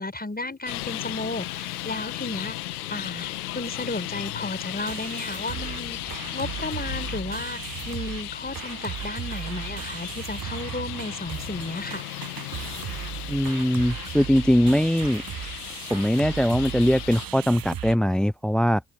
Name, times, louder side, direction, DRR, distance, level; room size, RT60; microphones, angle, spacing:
voice 1, 0.0-2.6 2.9-12.0, left 2 dB, 20° left, 5.8 m, -33 dB
Traffic noise roadway noise, 0.7-17.3, left 17 dB, 90° left, 1.7 m, -36 dB
sound 1, 2.4-2.5 2.7-3.1 3.3-3.4 3.6-18.0, right 10 dB, 50° right, 1.4 m, -37 dB
voice 2, 13.3-15.2 15.9-18.8, equal, ahead, 0.4 m, -21 dB
hypercardioid pair, 40°, 44 cm